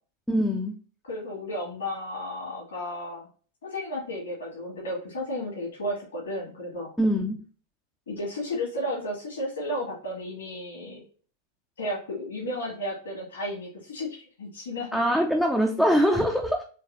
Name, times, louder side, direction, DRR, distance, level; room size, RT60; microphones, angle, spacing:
voice 1, 0.3-0.7 7.0-7.4 14.9-16.6, equal, ahead, 1 dB, 0.5 m, -23 dB
voice 2, 1.1-3.3 3.6-6.9 8.1-11.0 11.8-15.0, left 1 dB, 65° left, -3 dB, 2.0 m, -33 dB
4.6 x 3.2 x 2.6 m, 0.41 s
figure-of-eight pair, 90°, 0 cm